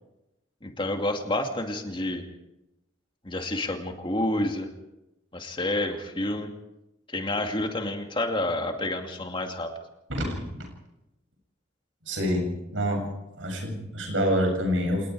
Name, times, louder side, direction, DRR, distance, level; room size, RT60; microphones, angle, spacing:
voice 1, 0.6-2.2 3.2-4.7 5.3-6.5 7.1-9.7, left 1 dB, 25° left, 3 dB, 2.5 m, -29 dB
voice 2, 10.1-10.7 12.1-13.1 13.4-15.1, equal, 90° right, 2 dB, 7.5 m, -27 dB
27.5 x 19.5 x 4.9 m, 0.91 s
head